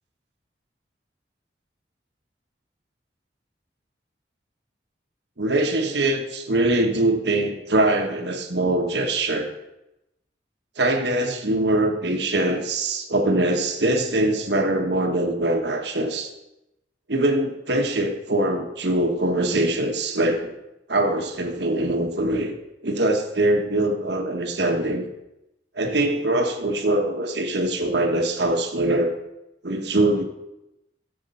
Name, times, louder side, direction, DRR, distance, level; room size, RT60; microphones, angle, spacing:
voice 1, 5.4-9.5 10.8-16.3 17.1-20.5 20.9-22.5 22.8-25.0 25.8-29.2 29.6-30.2, right 1 dB, 70° right, 4 dB, 1.3 m, -23 dB
13.0 x 7.6 x 5.5 m, 0.90 s
head